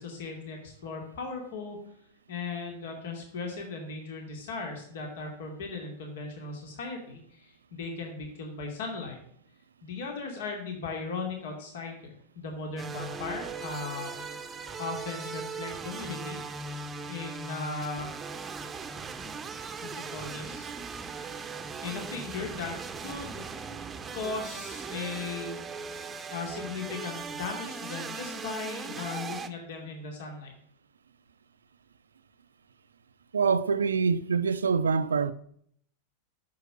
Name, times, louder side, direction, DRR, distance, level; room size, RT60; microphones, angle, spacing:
voice 1, 0.0-1.8 2.3-9.2 9.8-14.1 14.8-16.4 17.0-18.1 19.8-20.7 21.8-22.7 23.0-23.4 24.1-25.6 26.3-30.5, left 4 dB, 55° left, 2.5 m, -37 dB
sound 1, 12.8-29.5, right 5 dB, 20° right, 0.9 m, -39 dB
voice 2, 33.3-35.3, right 5 dB, 70° right, 0.6 m, -25 dB
9.4 x 6.7 x 7.8 m
figure-of-eight pair, 90°, 0 cm